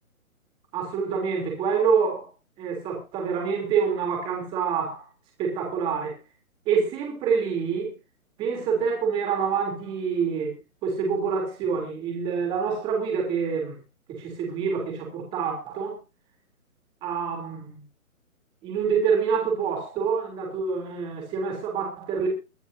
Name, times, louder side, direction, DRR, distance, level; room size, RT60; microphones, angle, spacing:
voice 1, 0.7-2.3 2.6-5.0 5.4-6.1 6.6-7.9 8.4-10.5 10.8-13.8 14.1-16.0 17.0-17.8 18.6-22.3, right 6 dB, 10° right, 3.2 m, -26 dB
22.5 x 12.0 x 2.7 m
hypercardioid pair, 170°, 43 cm